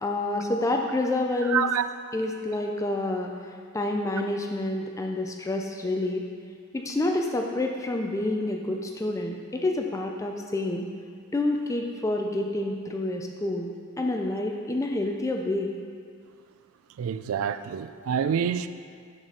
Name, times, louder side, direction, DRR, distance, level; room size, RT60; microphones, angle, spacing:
voice 1, 0.0-1.7 2.1-6.2 6.7-10.9 11.3-15.7, left 2 dB, 15° left, 0.3 m, -28 dB
voice 2, 1.5-1.9 17.0-18.7, right 7 dB, 65° right, 0.3 m, -27 dB
9.7 x 4.1 x 4.8 m
head